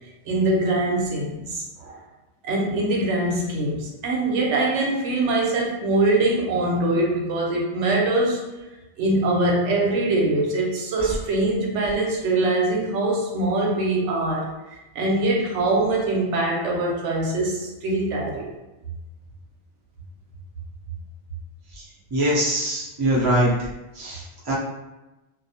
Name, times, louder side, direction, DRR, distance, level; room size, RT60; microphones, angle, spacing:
voice 1, 0.2-2.0 2.4-8.4 9.0-14.5 14.9-18.5, right 2 dB, 90° right, -1 dB, 0.9 m, -23 dB
voice 2, 22.1-23.5 24.0-24.5, right 1 dB, 25° right, -6 dB, 0.5 m, -22 dB
2.3 x 2.0 x 2.7 m, 1.0 s
omnidirectional pair, 1.2 m